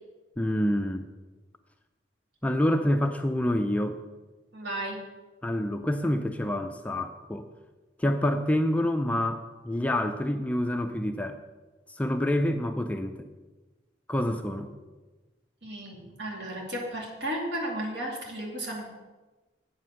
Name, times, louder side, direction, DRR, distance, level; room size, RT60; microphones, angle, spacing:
voice 1, 0.4-1.0 2.4-4.0 5.4-7.5 8.0-11.4 11.9-13.3 14.1-14.7, left 1 dB, 10° left, 6 dB, 0.4 m, -27 dB
voice 2, 4.5-5.0 15.6-18.9, right 1 dB, 65° right, -1 dB, 2.6 m, -34 dB
8.6 x 7.5 x 6.2 m, 1.2 s
head